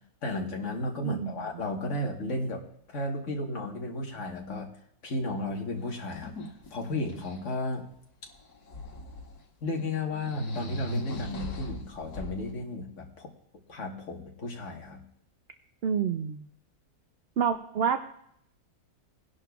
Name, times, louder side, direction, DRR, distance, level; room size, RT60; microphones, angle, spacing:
voice 1, 0.2-2.6 2.9-4.7 5.0-6.3 6.7-7.8 9.6-13.3 13.7-15.0, left 2 dB, 55° left, 1 dB, 1.7 m, -33 dB
voice 2, 1.0-1.3 15.8-16.5 17.4-18.0, right 7 dB, 65° right, 8 dB, 0.6 m, -28 dB
sound 1, 5.4-5.5 5.8-7.4 8.3-9.4 9.7-9.8 10.1-12.5, left 1 dB, 85° left, 2.0 m, -38 dB
21.0 x 11.0 x 2.4 m, 0.72 s
omnidirectional pair, 1.6 m